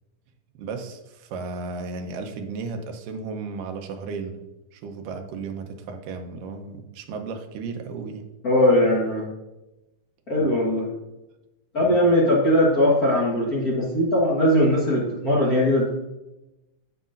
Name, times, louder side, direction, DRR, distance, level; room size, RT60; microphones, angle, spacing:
voice 1, 0.6-4.4 4.7-8.2 10.4-10.5 11.8-11.9, right 4 dB, 80° right, 5 dB, 2.4 m, -34 dB
voice 2, 8.4-9.2 10.3-10.8 11.7-15.9, left 1 dB, 80° left, -6 dB, 0.8 m, -20 dB
9.5 x 8.1 x 2.5 m, 0.99 s
omnidirectional pair, 3.9 m